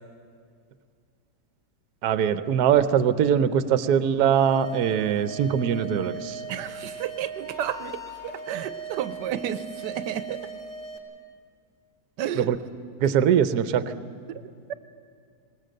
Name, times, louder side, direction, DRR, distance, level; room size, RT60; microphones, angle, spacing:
voice 1, 2.0-6.4 12.4-12.6 13.0-13.8, right 8 dB, 75° right, 12 dB, 1.2 m, -22 dB
sound 1, 4.3-11.0, right 4 dB, 30° left, 1.8 m, -39 dB
voice 2, 6.5-10.4 12.2-12.5, right 10 dB, 90° right, 12 dB, 1.3 m, -32 dB
20.5 x 18.5 x 7.7 m, 2.3 s
omnidirectional pair, 1.8 m